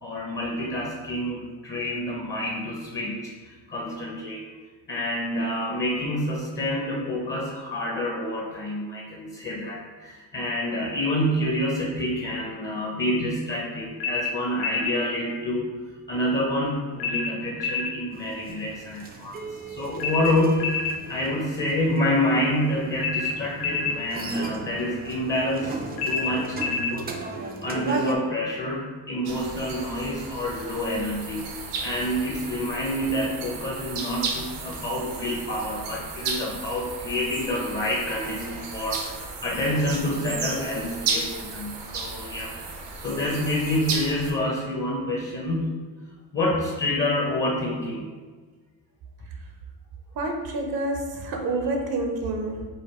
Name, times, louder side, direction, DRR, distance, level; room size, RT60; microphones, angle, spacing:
voice 1, 0.0-4.4 4.9-15.8 16.1-45.7 46.3-48.1, left 1 dB, 30° left, -2 dB, 0.6 m, -28 dB
sound 1, 14.0-15.0 17.0-18.0 20.0-21.0 23.0-24.0 26.0-27.0, left 5 dB, 70° left, 0.5 m, -28 dB
sound 2, 18.1-28.2, right 3 dB, 25° right, 0.3 m, -37 dB
sound 3, 29.2-44.3, right 4 dB, 90° right, 0.9 m, -34 dB
voice 2, 50.2-52.7, right 2 dB, 65° right, 3 dB, 0.7 m, -28 dB
5.0 x 2.4 x 4.2 m, 1.4 s
cardioid pair, 140°, 40 cm